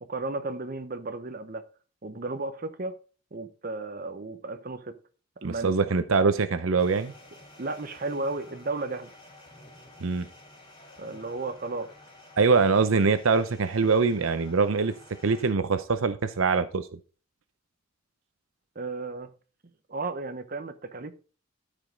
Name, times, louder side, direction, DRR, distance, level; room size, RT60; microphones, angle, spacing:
voice 1, 0.0-1.6 2.0-2.9 3.3-4.9 5.4-5.7 7.6-9.1 11.0-11.9 18.7-19.3 19.9-21.2, right 3 dB, 45° right, 0.9 m, -34 dB
voice 2, 5.4-7.1 10.0-10.3 12.4-14.9 15.2-16.9, right 4 dB, 85° right, 0.6 m, -23 dB
sound 1, 6.8-15.5, left 1 dB, 25° left, 2.7 m, -51 dB
13.0 x 5.1 x 3.8 m
head